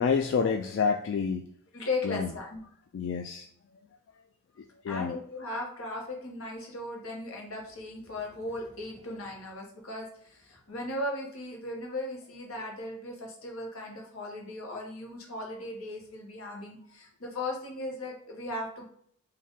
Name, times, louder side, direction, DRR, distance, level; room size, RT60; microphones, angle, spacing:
voice 1, 0.0-1.5 2.0-2.3 2.9-3.5 4.6-5.2, left 5 dB, 60° left, 3 dB, 0.3 m, -28 dB
voice 2, 1.7-2.6 4.9-18.8, left 2 dB, 85° left, 0 dB, 1.2 m, -37 dB
4.0 x 2.6 x 3.6 m, 0.65 s
head